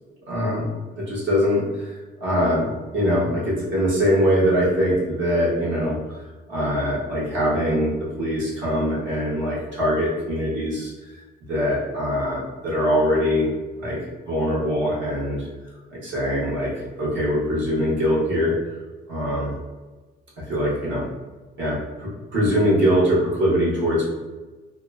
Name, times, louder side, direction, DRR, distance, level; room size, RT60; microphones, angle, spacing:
voice 1, 0.3-0.7 1.0-1.9 2.2-6.0 6.5-10.9 11.5-13.5 13.8-14.0 14.3-15.5 15.9-18.5 19.1-19.5 20.4-21.0 21.6-24.1, equal, 70° right, -6 dB, 1.2 m, -22 dB
2.8 x 2.1 x 2.3 m, 1.2 s
cardioid pair, 90°, 20 cm